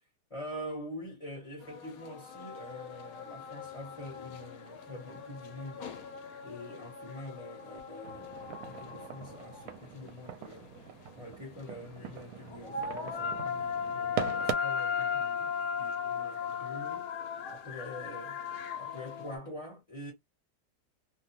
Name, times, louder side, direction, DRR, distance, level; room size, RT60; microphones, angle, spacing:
voice 1, 0.3-6.0 6.4-10.7 11.1-15.5 15.8-17.1 17.5-18.4 18.8-20.1, left 1 dB, 30° left, 0.6 m, -45 dB
sound 1, 1.6-19.4, left 6 dB, 70° left, 0.9 m, -38 dB
sound 2, 8.0-14.5, right 10 dB, 70° right, 0.9 m, -41 dB
2.8 x 2.2 x 2.7 m
omnidirectional pair, 1.9 m